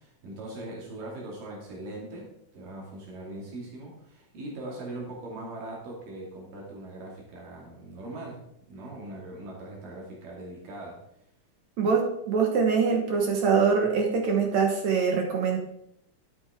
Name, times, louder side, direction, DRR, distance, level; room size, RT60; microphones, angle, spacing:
voice 1, 0.0-8.4 8.7-11.0, right 2 dB, 80° right, -3 dB, 4.1 m, -40 dB
voice 2, 11.8-15.6, right 5 dB, 65° right, 1 dB, 2.4 m, -24 dB
12.0 x 9.2 x 3.6 m, 0.77 s
omnidirectional pair, 3.8 m